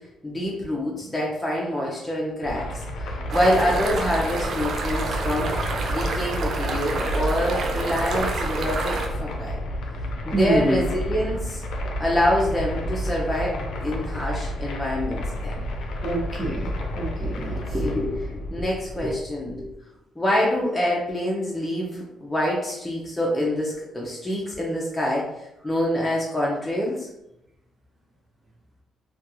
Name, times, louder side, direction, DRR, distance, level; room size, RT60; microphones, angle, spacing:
voice 1, 0.2-5.5 5.9-8.9 9.2-9.6 10.2-11.6 12.0-15.6 17.3-17.4 17.7-19.7 20.2-25.3 25.6-27.1, left 1 dB, 10° left, -5 dB, 0.5 m, -26 dB
sound 1, 2.4-19.7, equal, 75° left, 0.4 m, -30 dB
sound 2, 3.3-9.1, right 3 dB, 60° right, 0.4 m, -29 dB
voice 2, 10.3-10.8 16.0-17.6, right 2 dB, 30° right, -3 dB, 0.7 m, -26 dB
2.3 x 2.3 x 2.8 m, 0.87 s
cardioid pair, 90°, 0 cm